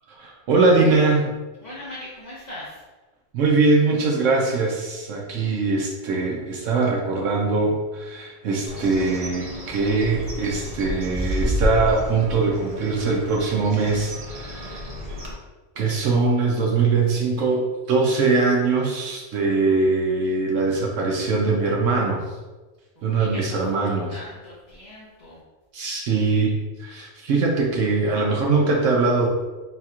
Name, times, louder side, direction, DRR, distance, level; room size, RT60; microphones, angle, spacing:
voice 1, 0.2-1.3 3.3-14.8 15.8-22.2 23.0-24.2 25.7-29.3, right 3 dB, 75° right, -1 dB, 1.0 m, -22 dB
voice 2, 1.6-2.8 23.0-25.4, left 1 dB, 35° left, -8 dB, 1.0 m, -40 dB
Bird, 8.7-15.3, equal, 35° right, 0.6 m, -30 dB
4.3 x 4.1 x 2.4 m, 1.2 s
omnidirectional pair, 1.3 m